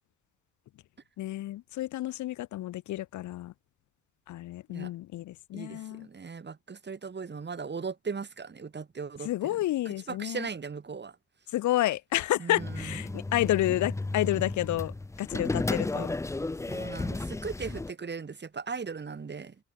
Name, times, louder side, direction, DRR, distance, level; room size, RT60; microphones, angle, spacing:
voice 1, 1.2-3.5 4.3-6.1 9.2-10.5 11.5-14.9 15.2-16.1, left 15 dB, 70° left, 0.8 m, -30 dB
voice 2, 5.5-9.6 9.9-11.2 12.4-13.2 16.7-19.6, right 5 dB, 35° right, 7.1 m, -38 dB
sound 1, 12.6-17.9, left 2 dB, 10° left, 0.5 m, -33 dB
cardioid pair, 90°, 30 cm